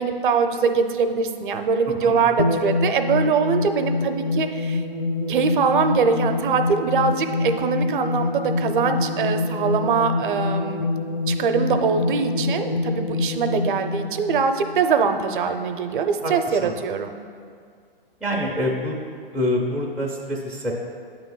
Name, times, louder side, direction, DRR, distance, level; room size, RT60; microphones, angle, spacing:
voice 1, 0.0-4.8 5.3-10.9 11.3-17.1, right 5 dB, 60° right, 7 dB, 0.6 m, -22 dB
sound 1, 2.4-15.2, left 3 dB, 45° left, 0.7 m, -26 dB
voice 2, 18.2-19.0 19.3-20.8, left 1 dB, ahead, -5 dB, 0.4 m, -25 dB
8.8 x 3.0 x 5.4 m, 2.2 s
figure-of-eight pair, 120°, 29 cm